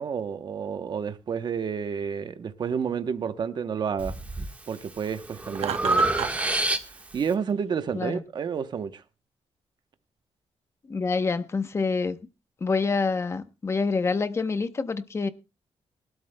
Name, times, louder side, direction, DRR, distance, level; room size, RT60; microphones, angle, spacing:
voice 1, 0.0-4.2 4.7-6.1 7.1-9.0, right 6 dB, 40° right, 0.9 m, -30 dB
Breathing, 4.0-4.5 5.0-7.2, right 2 dB, 15° right, 1.3 m, -27 dB
Laughter, 5.5-6.5, right 9 dB, 75° right, 0.9 m, -31 dB
voice 2, 10.9-12.2 12.6-15.3, left 4 dB, 25° left, 0.8 m, -26 dB
22.5 x 12.5 x 2.2 m
wide cardioid pair, 170°, 11 cm